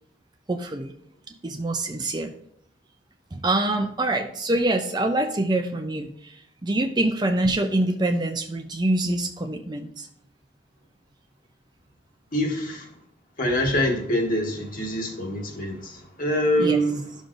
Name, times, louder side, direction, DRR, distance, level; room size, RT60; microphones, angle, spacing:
voice 1, 0.5-0.9 1.3-2.3 3.3-10.1 16.6-16.8, right 2 dB, 20° right, 6 dB, 0.5 m, -25 dB
voice 2, 12.3-12.9 13.4-17.0, equal, 45° left, 0 dB, 1.5 m, -25 dB
12.0 x 6.2 x 2.6 m, 0.70 s
head